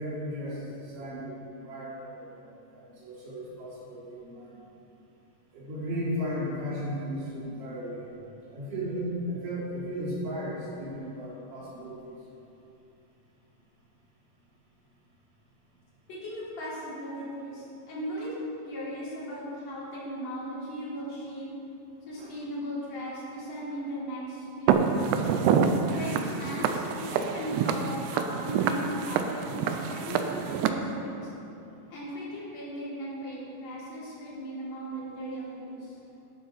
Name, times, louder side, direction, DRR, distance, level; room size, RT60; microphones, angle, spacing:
voice 1, 0.0-4.6 5.5-8.1 8.5-12.1 22.2-22.3 35.1-35.2, equal, 60° right, -9 dB, 5.6 m, -35 dB
voice 2, 16.1-18.3 18.6-21.5 22.1-25.3 25.9-31.3 31.9-36.0, equal, 40° left, -8 dB, 4.0 m, -37 dB
Walk footsteps, 24.7-30.7, right 6 dB, 85° right, 2.4 m, -27 dB
12.5 x 11.5 x 4.6 m, 2.8 s
omnidirectional pair, 5.6 m